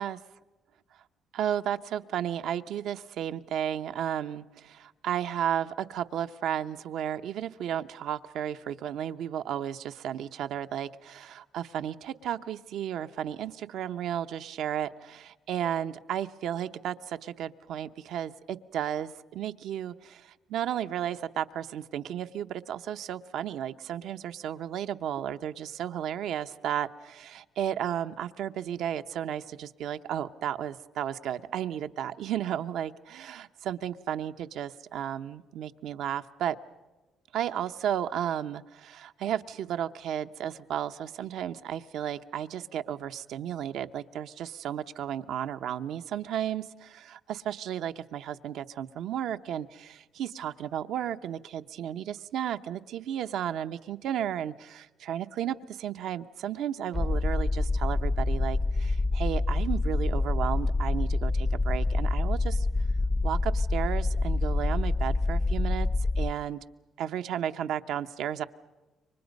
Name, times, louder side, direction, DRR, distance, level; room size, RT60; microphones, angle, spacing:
voice 1, 1.3-36.6 37.3-62.7 63.2-65.9 66.2-66.6 67.0-68.4, right 10 dB, 80° right, 9 dB, 0.8 m, -33 dB
sound 1, 56.9-66.3, left 2 dB, 35° left, 0.7 m, -27 dB
29.0 x 24.5 x 5.3 m, 1.1 s
cardioid pair, 90°, 0 cm